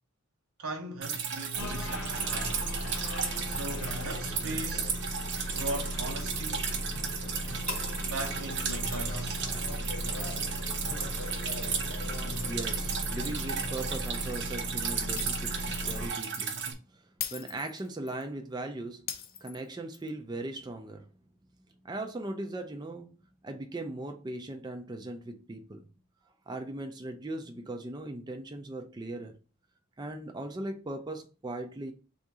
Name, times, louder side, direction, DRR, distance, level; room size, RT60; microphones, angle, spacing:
voice 1, 0.6-2.6 3.4-5.0 5.5-6.7 8.0-9.4, right 1 dB, 85° right, 0.9 m, -39 dB
Drip, 1.0-16.7, right 6 dB, 55° right, 0.7 m, -35 dB
sound 1, 1.5-16.1, left 1 dB, 80° left, 0.8 m, -36 dB
voice 2, 12.0-16.6 16.9-17.0 17.3-19.1 19.4-21.1 21.8-23.1 23.4-25.9 26.5-29.4 30.0-31.9, right 2 dB, 20° right, 0.4 m, -39 dB
Shatter, 15.2-15.7 16.0-16.2 17.2-18.2 19.1-20.1, left 10 dB, 45° left, 0.4 m, -40 dB
3.6 x 2.7 x 4.7 m
head